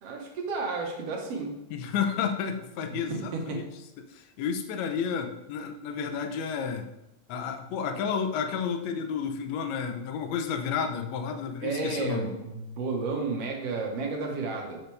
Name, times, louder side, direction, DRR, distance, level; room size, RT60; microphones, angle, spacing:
voice 1, 0.0-1.6 2.9-3.7 11.6-14.8, right 3 dB, 55° right, 1 dB, 2.0 m, -32 dB
voice 2, 1.7-3.6 4.0-6.9 7.3-12.3, left 6 dB, 70° left, 5 dB, 1.8 m, -31 dB
8.0 x 6.9 x 3.4 m, 0.93 s
omnidirectional pair, 3.8 m